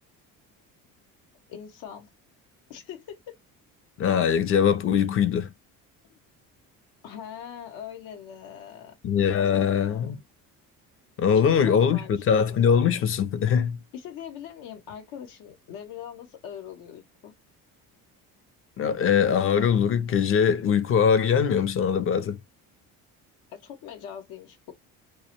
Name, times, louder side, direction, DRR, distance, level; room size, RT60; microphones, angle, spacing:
voice 1, 1.5-2.1 2.7-3.4 4.9-5.0 7.0-9.0 9.4-10.2 11.3-12.3 12.9-13.0 13.9-17.3 23.5-24.7, left 8 dB, 80° left, 0.8 m, -42 dB
voice 2, 4.0-5.5 9.0-10.2 11.2-13.8 18.8-22.4, left 7 dB, 40° left, 0.5 m, -22 dB
2.1 x 2.1 x 2.8 m
cardioid pair, 110°, 35 cm